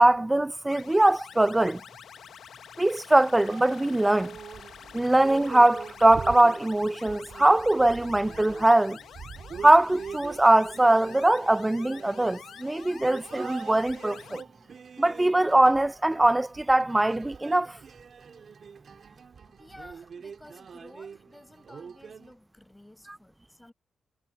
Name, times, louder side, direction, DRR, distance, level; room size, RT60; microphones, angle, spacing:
voice 1, 0.0-1.8 2.8-4.4 4.9-9.0 9.6-14.4 15.0-17.8, right 1 dB, 15° right, 0.4 m, -21 dB
sound 1, 0.7-14.4, left 8 dB, 75° left, 1.2 m, -47 dB
sound 2, 3.5-22.3, right 6 dB, 60° right, 3.0 m, -44 dB
voice 2, 19.6-23.7, left 1 dB, 10° left, 8.0 m, -52 dB
cardioid pair, 65°, 0 cm